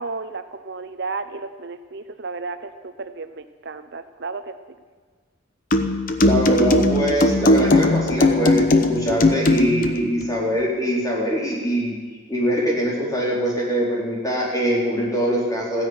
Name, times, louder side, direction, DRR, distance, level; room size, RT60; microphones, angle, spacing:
voice 1, 0.0-4.6, right 4 dB, 55° right, 10 dB, 0.7 m, -33 dB
sound 1, 5.7-10.0, left 2 dB, 40° left, 1.0 m, -18 dB
voice 2, 6.2-12.0 12.3-15.9, equal, 15° left, -4 dB, 4.3 m, -23 dB
15.0 x 10.5 x 9.2 m, 1.5 s
head